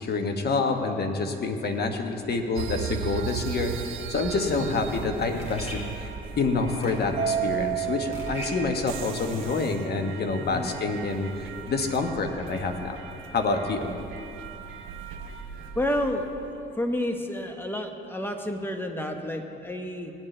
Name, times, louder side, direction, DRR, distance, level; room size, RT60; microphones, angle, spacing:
voice 1, 0.0-6.0 6.4-13.0 13.3-13.9, left 3 dB, 55° left, 5 dB, 1.2 m, -27 dB
sound 1, 2.6-16.5, right 7 dB, 90° right, 0.7 m, -38 dB
sound 2, 4.3-9.2, equal, 35° left, 3.1 m, -42 dB
voice 2, 4.3-4.6 10.4-10.7 15.7-16.3 16.8-20.1, left 1 dB, 10° left, 4 dB, 1.2 m, -30 dB
Mallet percussion, 7.2-9.6, right 10 dB, 50° right, 1.5 m, -31 dB
18.0 x 9.0 x 3.3 m, 2.7 s
cardioid pair, 90°, 20 cm